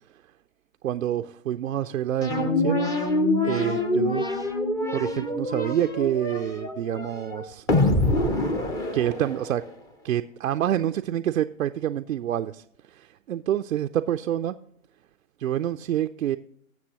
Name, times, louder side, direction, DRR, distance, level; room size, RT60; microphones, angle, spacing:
voice 1, 0.8-2.8 3.4-4.2 4.9-7.7 8.9-9.6 10.0-14.6 15.4-16.4, right 11 dB, 85° right, 9 dB, 0.5 m, -27 dB
sound 1, 2.2-9.7, left 1 dB, 10° left, 0.5 m, -25 dB
18.0 x 7.2 x 2.9 m, 0.69 s
hypercardioid pair, 130°, 39 cm